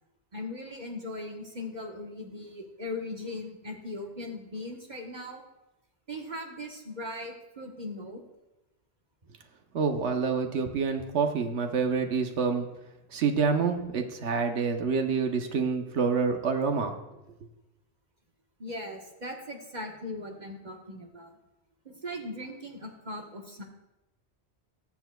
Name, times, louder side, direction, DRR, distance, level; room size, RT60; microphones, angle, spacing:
voice 1, 0.3-5.4 6.1-8.2 18.6-21.4 21.8-23.6, left 1 dB, 45° right, 1 dB, 1.2 m, -39 dB
voice 2, 9.7-12.7 13.1-16.9, right 5 dB, 90° right, 5 dB, 1.1 m, -27 dB
20.5 x 7.1 x 2.3 m, 0.98 s
omnidirectional pair, 1.1 m